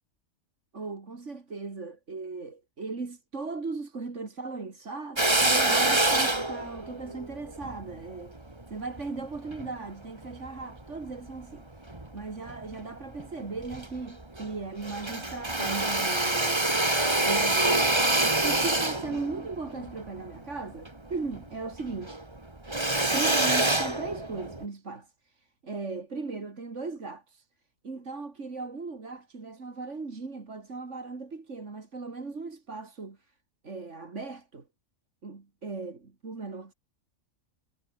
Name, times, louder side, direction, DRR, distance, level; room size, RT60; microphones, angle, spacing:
voice 1, 0.7-17.9 18.4-22.3 23.1-27.5 27.8-33.3 33.6-34.7 35.2-36.7, right 3 dB, 65° right, 2.9 m, -38 dB
Drill, 5.2-9.7 10.3-11.4 11.9-12.8 13.2-13.3 13.6-14.6 14.8-21.5 21.8-24.6, right 2 dB, 20° right, 2.4 m, -26 dB
omnidirectional pair, 1.3 m